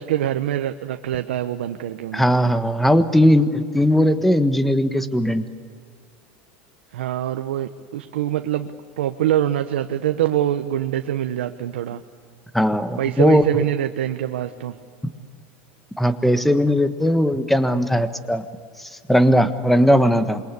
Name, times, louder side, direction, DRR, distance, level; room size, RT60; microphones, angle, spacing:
voice 1, 0.0-2.2 6.9-12.0 13.0-14.7, right 12 dB, 85° right, 7 dB, 1.0 m, -24 dB
voice 2, 2.1-5.5 12.5-13.4 16.0-18.4 18.8-20.4, equal, 5° left, 9 dB, 1.5 m, -18 dB
27.0 x 23.0 x 8.5 m, 2.1 s
supercardioid pair, 115°, 6 cm